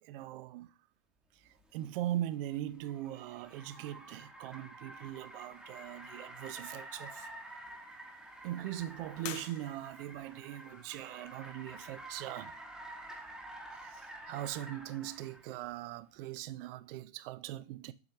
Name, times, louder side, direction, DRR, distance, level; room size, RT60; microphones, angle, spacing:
voice 1, 0.0-0.7 1.4-7.3 8.4-12.5 13.7-17.9, right 13 dB, 45° right, 0.5 m, -40 dB
Car, 1.6-15.5, right 1 dB, ahead, 1.1 m, -49 dB
sound 1, 4.9-13.3, left 9 dB, 70° left, 0.8 m, -54 dB
7.1 x 3.1 x 4.8 m
hypercardioid pair, 115°, 39 cm